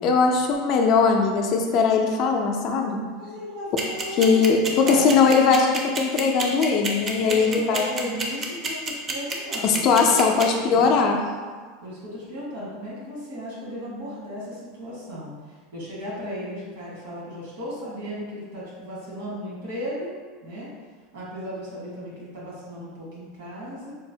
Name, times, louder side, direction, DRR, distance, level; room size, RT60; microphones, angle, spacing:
voice 1, 0.0-3.0 4.2-7.9 9.6-11.2, left 5 dB, 50° left, 2 dB, 0.4 m, -20 dB
voice 2, 3.1-5.1 7.2-10.9 11.8-20.1 20.4-20.7 21.1-23.9, equal, 80° right, -6 dB, 1.4 m, -36 dB
sound 1, 3.8-10.4, right 4 dB, 30° right, 0.5 m, -28 dB
4.3 x 2.0 x 2.7 m, 1.5 s
supercardioid pair, 130°, 0 cm